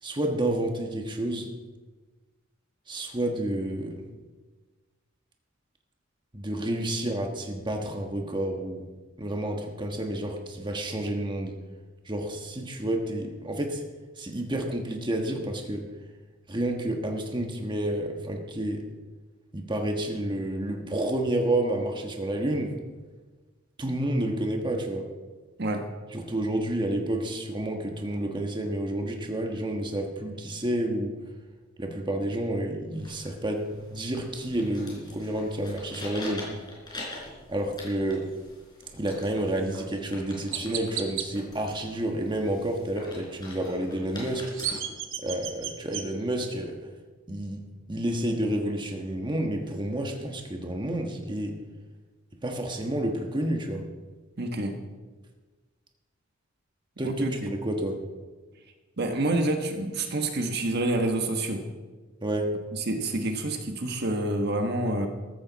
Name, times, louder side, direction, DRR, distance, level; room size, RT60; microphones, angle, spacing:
voice 1, 0.0-1.5 2.9-4.1 6.3-8.9 9.2-11.6 12.0-13.8 14.2-15.9 16.5-18.9 19.5-22.8 23.8-25.1 26.1-31.2 31.8-36.5 37.5-38.3 38.9-44.5 45.2-46.8 47.3-47.6 47.9-51.6 52.4-53.9 57.0-58.0 62.2-62.5, right 1 dB, 25° right, 2 dB, 1.4 m, -30 dB
sound 1, 32.9-44.7, left 2 dB, 20° left, 4.4 m, -44 dB
Chirp tweet, 39.6-39.8 40.5-41.3 44.2-46.0, right 9 dB, 75° right, 1.3 m, -33 dB
voice 2, 54.4-54.7 57.0-57.5 59.0-61.6 62.9-65.1, right 2 dB, 55° right, 4 dB, 1.4 m, -28 dB
14.5 x 14.0 x 4.1 m, 1.3 s
head